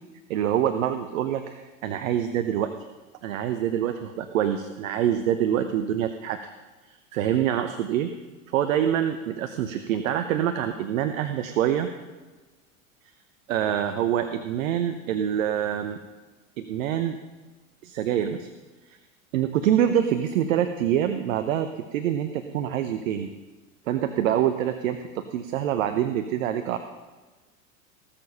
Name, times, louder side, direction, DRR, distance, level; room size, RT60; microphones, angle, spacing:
voice 1, 0.3-2.7 3.2-6.5 6.9-8.1 8.5-11.9 13.5-16.0 16.6-17.2 17.8-18.5 19.3-23.3 23.9-26.8, right 10 dB, 65° right, 8 dB, 1.0 m, -25 dB
19.0 x 7.1 x 5.6 m, 1.3 s
hypercardioid pair, 85°, 42 cm